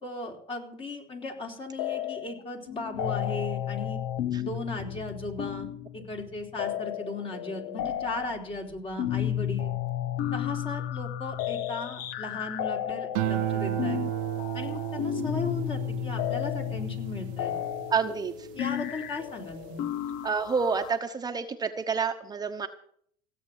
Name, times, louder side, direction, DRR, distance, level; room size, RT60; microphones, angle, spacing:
voice 1, 0.0-4.0 4.4-9.7 10.3-14.0 14.5-17.5 18.5-19.9, left 2 dB, 35° left, 2 dB, 3.9 m, -37 dB
sound 1, 1.8-2.4 2.7-20.9, left 11 dB, 65° left, 0.8 m, -33 dB
sound 2, 13.1-19.7 20.1-20.6, right 18 dB, 80° right, 0.6 m, -34 dB
voice 2, 17.9-18.5 20.2-22.7, right 5 dB, 25° right, 6 dB, 1.0 m, -29 dB
16.5 x 8.1 x 7.5 m, 0.64 s
supercardioid pair, 110°, 17 cm